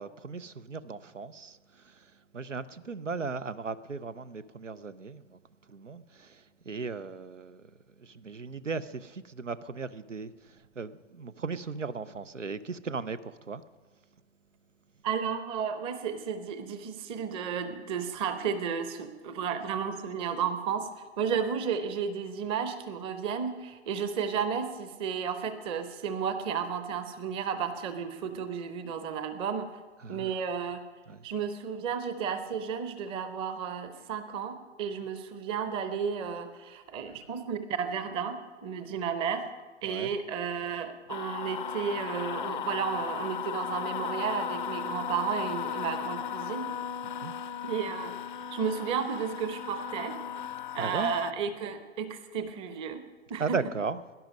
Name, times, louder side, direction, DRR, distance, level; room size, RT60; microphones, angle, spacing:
voice 1, 0.0-1.6 1.9-2.0 2.3-5.4 5.7-7.6 8.0-10.3 10.8-13.6 30.0-30.3 31.1-31.2 39.9-40.1 47.2-47.3 50.8-51.1 53.4-54.0, right 4 dB, 85° right, 0.7 m, -36 dB
voice 2, 15.0-29.7 30.1-30.8 31.2-39.4 39.8-46.7 47.7-48.1 48.5-50.2 50.7-53.0 53.3-53.6, right 7 dB, 15° right, 0.7 m, -33 dB
sound 1, 41.1-51.3, left 9 dB, 45° left, 0.5 m, -36 dB
17.5 x 11.0 x 5.2 m
figure-of-eight pair, 120°, 36 cm